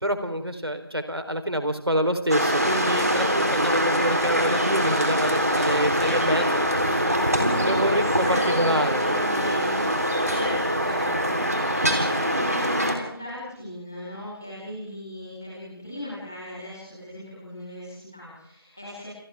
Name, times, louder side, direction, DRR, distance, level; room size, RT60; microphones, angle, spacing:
voice 1, 0.0-6.5 7.6-9.0, equal, 90° right, 7 dB, 3.9 m, -26 dB
sound 1, 2.3-12.9, equal, 40° right, 3.8 m, -23 dB
voice 2, 7.3-7.7 8.1-9.9 10.2-19.0, left 1 dB, 5° left, -8 dB, 4.5 m, -37 dB
29.0 x 28.0 x 3.6 m, 0.69 s
figure-of-eight pair, 180°, 13 cm